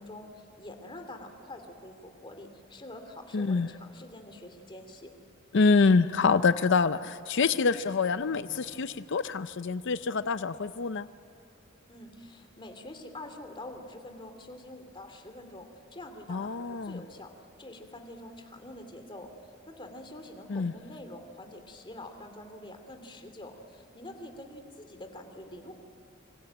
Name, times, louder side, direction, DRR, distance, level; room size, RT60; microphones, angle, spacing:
voice 1, 0.0-5.1 11.9-17.3 17.6-25.8, left 1 dB, 25° left, 6 dB, 2.8 m, -46 dB
voice 2, 3.3-3.7 5.5-11.1 16.3-17.0 20.5-20.7, left 4 dB, 60° left, 12 dB, 0.6 m, -26 dB
sound 1, 7.4-9.4, left 1 dB, 90° left, 5.2 m, -55 dB
26.5 x 25.0 x 8.8 m, 2.5 s
head